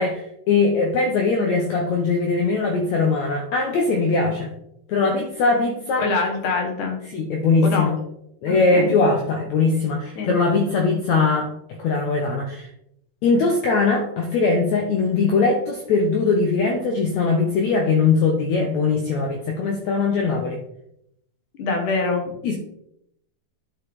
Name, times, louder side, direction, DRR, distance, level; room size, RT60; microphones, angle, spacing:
voice 1, 0.0-4.5 4.9-6.1 7.1-8.0 8.4-11.5 11.8-12.7 13.2-20.6 22.4-22.6, left 4 dB, 85° left, 2 dB, 1.6 m, -21 dB
voice 2, 6.0-7.0 7.7-7.9 8.5-8.9 10.2-10.3 21.6-22.3, left 3 dB, 65° left, 3 dB, 2.7 m, -24 dB
10.5 x 5.4 x 3.5 m, 0.77 s
omnidirectional pair, 4.3 m